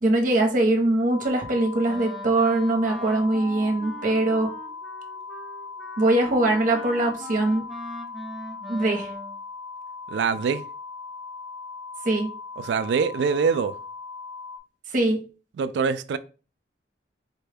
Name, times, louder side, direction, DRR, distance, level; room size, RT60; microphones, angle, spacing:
voice 1, 0.0-4.5 6.0-7.7 8.7-9.1 12.0-12.3 14.9-15.2, right 2 dB, 50° right, 0.8 m, -22 dB
sound 1, 1.1-14.6, left 4 dB, 50° left, 0.4 m, -39 dB
Wind instrument woodwind instrument, 1.9-9.4, equal, ahead, 0.7 m, -40 dB
voice 2, 10.1-10.6 12.6-13.7 15.6-16.2, right 5 dB, 70° right, 0.3 m, -24 dB
4.2 x 2.2 x 3.3 m
head